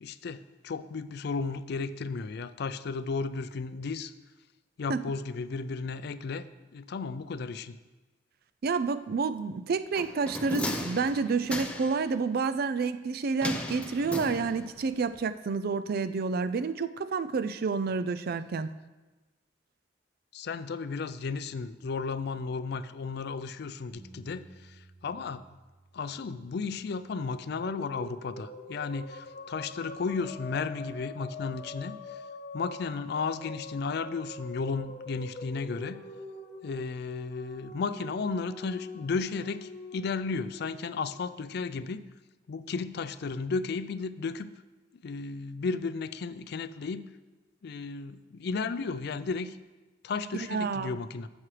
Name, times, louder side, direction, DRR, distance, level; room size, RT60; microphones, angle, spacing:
voice 1, 0.0-4.1 4.8-6.4 6.7-7.8 20.3-25.4 25.9-32.2 32.5-36.0 36.6-42.0 42.5-44.5 45.0-47.0 47.6-49.6 50.0-51.3, left 4 dB, 60° left, 13 dB, 0.4 m, -34 dB
voice 2, 8.6-18.7 50.5-51.0, right 4 dB, 55° right, 13 dB, 0.4 m, -29 dB
sound 1, 10.0-12.1 13.4-14.9 15.1-15.2, left 1 dB, 5° left, 0.6 m, -35 dB
Bass guitar, 23.9-28.3 29.0-30.1, right 2 dB, 40° right, 1.6 m, -58 dB
sound 2, 27.1-41.6, left 2 dB, 40° left, 0.8 m, -44 dB
12.5 x 7.2 x 3.3 m, 1.2 s
head